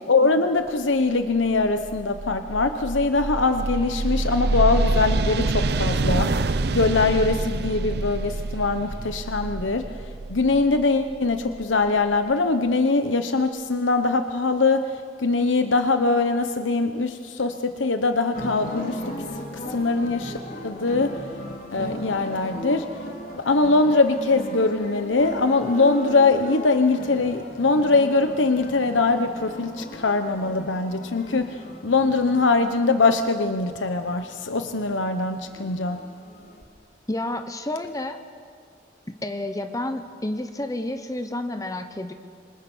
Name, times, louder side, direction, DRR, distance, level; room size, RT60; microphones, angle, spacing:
voice 1, 0.1-9.8 10.3-14.9 15.2-19.1 19.7-21.2 21.7-22.9 23.3-36.0, left 3 dB, 85° left, 7 dB, 1.0 m, -22 dB
sound 1, 1.4-12.1, right 2 dB, 60° right, 0.7 m, -27 dB
sound 2, 18.3-36.6, equal, 50° left, 3.6 m, -38 dB
voice 2, 37.1-38.2 39.2-42.1, left 1 dB, 20° left, 8 dB, 1.0 m, -30 dB
27.5 x 25.5 x 6.3 m, 2.1 s
head